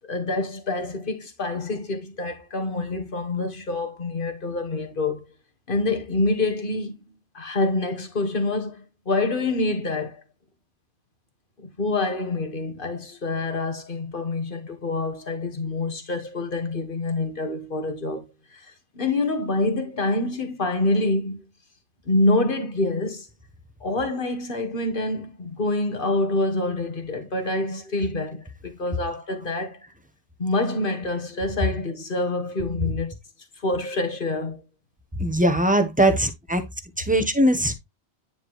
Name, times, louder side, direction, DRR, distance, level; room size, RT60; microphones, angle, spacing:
voice 1, 0.1-5.2 5.7-7.0 7.3-10.2 11.6-18.2 18.5-21.5 22.1-23.3 23.8-29.8 30.4-33.1 33.6-34.6, left 2 dB, 50° left, 1.8 m, -26 dB
voice 2, 35.2-36.6 37.0-37.7, right 1 dB, 10° right, 1.0 m, -20 dB
9.6 x 5.1 x 3.1 m
omnidirectional pair, 1.2 m